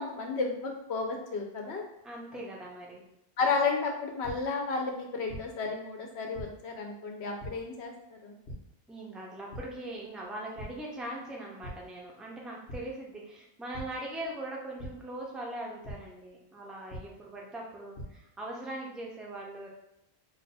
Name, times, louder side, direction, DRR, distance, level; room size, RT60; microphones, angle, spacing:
voice 1, 0.0-1.8 3.4-8.4, left 4 dB, 80° left, 1 dB, 0.9 m, -32 dB
voice 2, 2.0-3.0 8.9-19.7, right 1 dB, ahead, -3 dB, 0.3 m, -41 dB
sound 1, 4.2-4.3 5.3-5.4 6.4-6.5 7.4-7.5 8.5-8.6 9.5-9.6 10.1-10.2 10.6-10.7 11.6-11.7 12.7-12.8 13.7-13.8 14.8-14.9 15.8-15.9 16.9-17.0 17.7-18.0, right 1 dB, 55° left, 0.9 m, -40 dB
2.6 x 2.2 x 4.0 m, 0.83 s
omnidirectional pair, 1.1 m